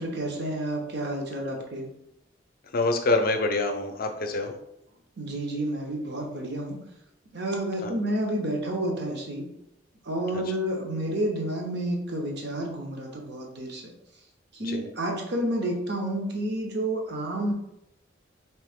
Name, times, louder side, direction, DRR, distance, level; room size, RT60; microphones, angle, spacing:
voice 1, 0.0-1.9 5.2-6.8 7.3-9.4 10.0-13.9 14.5-17.5, right 1 dB, 60° right, 1 dB, 0.8 m, -30 dB
voice 2, 2.7-4.6 7.8-8.0 10.3-10.5 14.6-14.9, left 2 dB, 50° left, 6 dB, 0.5 m, -26 dB
3.4 x 3.0 x 3.5 m, 0.83 s
head